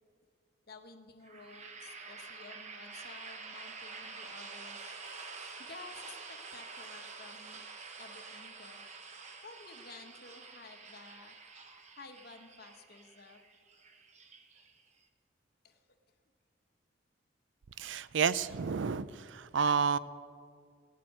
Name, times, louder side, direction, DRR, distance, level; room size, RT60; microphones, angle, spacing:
voice 1, 0.7-4.8 5.6-7.6 8.0-8.8 9.4-11.4 12.0-13.4 15.6-15.8, left 3 dB, 50° left, 6 dB, 1.1 m, -53 dB
sound 1, 1.2-15.0, right 4 dB, 35° right, 1.0 m, -48 dB
voice 2, 17.8-20.0, right 6 dB, 75° right, 16 dB, 0.5 m, -30 dB
16.0 x 7.6 x 9.5 m, 2.1 s
head